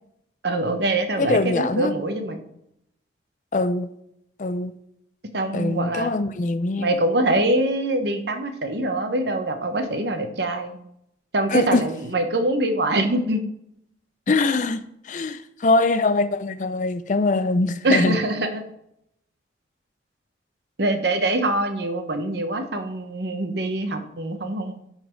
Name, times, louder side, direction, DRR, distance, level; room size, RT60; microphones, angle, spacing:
voice 1, 0.4-2.4 5.3-6.1 6.8-10.8 11.3-13.4 17.8-18.6 20.8-24.8, right 1 dB, 60° right, 0.9 m, -24 dB
voice 2, 1.2-1.9 3.5-3.9 4.4-4.7 5.5-6.9 11.5-11.8 14.3-14.8 15.1-18.2, left 3 dB, 40° left, 0.4 m, -22 dB
11.0 x 4.1 x 4.5 m
head